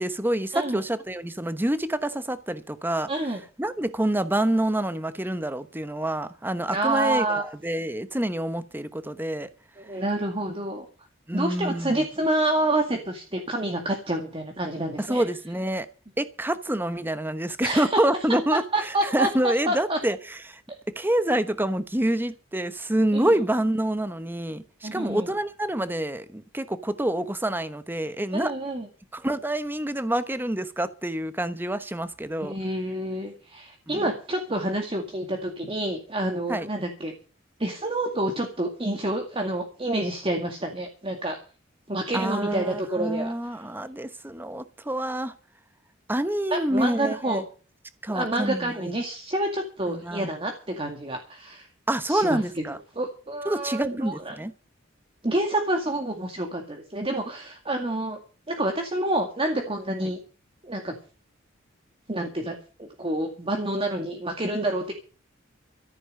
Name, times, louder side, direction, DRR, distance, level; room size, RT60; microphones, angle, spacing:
voice 1, 0.0-3.1 3.6-9.5 11.3-12.1 15.0-15.9 16.2-20.6 21.0-28.5 29.1-32.5 33.9-34.0 36.5-36.7 42.1-45.3 46.1-47.4 48.0-48.7 49.9-50.3 51.9-52.8 53.4-54.5 60.0-60.1, right 1 dB, 10° right, 1.0 m, -27 dB
voice 2, 3.1-3.4 6.7-7.4 9.8-10.9 11.3-15.2 17.6-18.0 18.5-19.3 19.7-20.0 23.1-23.3 24.8-25.3 28.3-28.9 32.4-37.1 37.6-41.4 41.9-43.6 46.5-47.4 48.1-51.7 52.1-52.6 53.0-54.4 55.2-58.2 58.5-60.2 60.6-60.9 62.1-64.9, right 1 dB, 25° right, 2.1 m, -28 dB
14.0 x 8.6 x 7.7 m
head